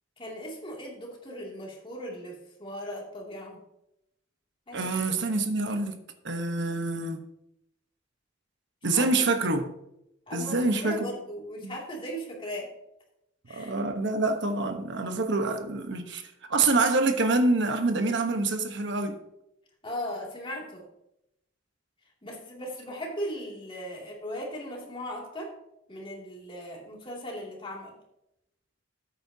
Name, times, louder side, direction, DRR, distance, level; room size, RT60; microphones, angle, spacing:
voice 1, 0.2-3.6 4.7-5.1 8.9-9.3 10.3-12.7 13.5-13.7 19.8-20.9 22.2-25.5 25.9-28.0, equal, 30° left, 2.5 m, -38 dB
voice 2, 4.7-6.0 6.2-7.2 8.8-9.7 10.3-11.1 11.6-11.8 13.5-19.2, right 3 dB, 65° right, 1.1 m, -26 dB
13.0 x 8.6 x 2.8 m
head